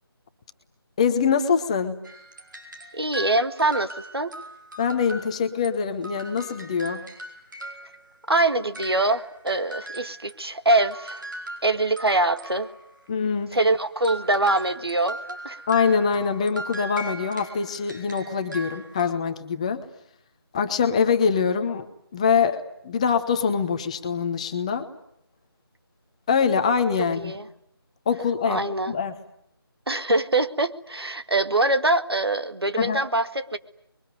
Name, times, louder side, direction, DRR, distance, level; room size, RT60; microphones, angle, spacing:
voice 1, 1.0-2.0 4.8-7.0 13.1-13.6 15.7-19.8 20.5-24.9 26.3-27.3 28.1-29.1 32.8-33.0, left 6 dB, 15° left, 8 dB, 1.0 m, -24 dB
sound 1, 2.0-5.7 6.0-10.4 10.7-13.0 14.0-19.1, right 1 dB, 50° right, 4.8 m, -39 dB
voice 2, 2.9-4.3 8.3-11.2 11.6-12.7 13.5-15.6 27.2-27.4 28.5-28.9 29.9-33.6, right 2 dB, 75° right, 10 dB, 1.9 m, -24 dB
28.0 x 22.5 x 9.4 m, 0.72 s
figure-of-eight pair, 160°, 13 cm